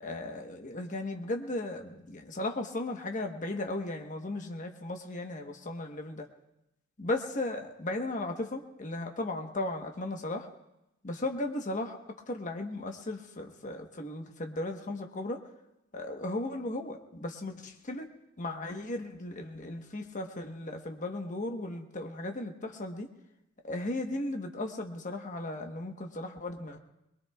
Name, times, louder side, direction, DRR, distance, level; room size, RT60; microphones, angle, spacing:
voice 1, 0.0-6.3 7.0-10.5 11.0-12.0 12.3-15.4 15.9-18.1 18.4-23.1 23.6-26.8, left 2 dB, 40° left, 4 dB, 1.2 m, -36 dB
22.5 x 21.5 x 2.4 m, 0.89 s
head